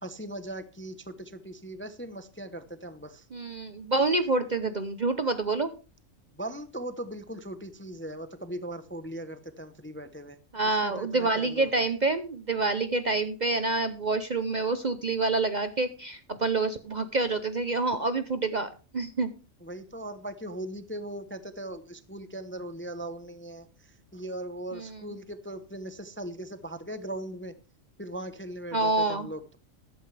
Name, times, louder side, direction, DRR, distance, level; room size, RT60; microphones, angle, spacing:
voice 1, 0.0-3.3 6.3-10.4 10.6-11.8 19.6-27.5 28.0-29.6, right 1 dB, 10° left, 11 dB, 0.7 m, -39 dB
voice 2, 3.3-5.7 10.5-19.3 28.7-29.3, right 3 dB, 40° right, 11 dB, 0.7 m, -27 dB
13.5 x 12.0 x 3.3 m, 0.34 s
omnidirectional pair, 1.4 m